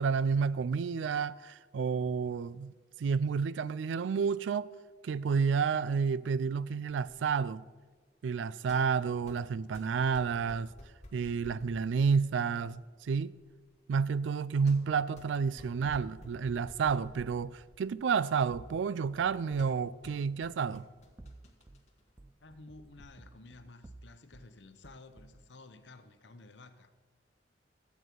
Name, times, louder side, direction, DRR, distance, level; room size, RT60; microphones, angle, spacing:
voice 1, 0.0-2.7 3.0-4.7 5.0-7.6 8.2-10.7 11.1-13.3 13.9-20.8, right 5 dB, 85° right, 0.3 m, -30 dB
sound 1, 8.1-23.1, left 1 dB, 40° left, 1.4 m, -56 dB
sound 2, 16.8-17.4 18.5-19.8 21.0-21.8 22.2-24.5 24.8-25.5, right 2 dB, 15° right, 0.4 m, -54 dB
voice 2, 22.4-26.9, left 2 dB, 70° left, 0.8 m, -53 dB
13.0 x 8.3 x 4.6 m
head